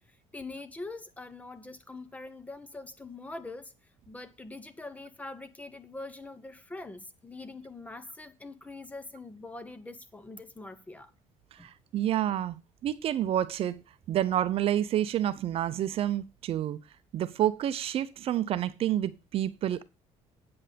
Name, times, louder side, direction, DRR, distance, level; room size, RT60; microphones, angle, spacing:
voice 1, 0.0-3.7 4.1-11.1 11.6-11.7, left 2 dB, 10° left, 1.0 m, -43 dB
voice 2, 11.5-12.6 12.8-13.8 14.1-16.8 17.1-19.8, right 11 dB, 50° right, 0.6 m, -29 dB
8.6 x 8.1 x 5.1 m
cardioid pair, 150°, 13 cm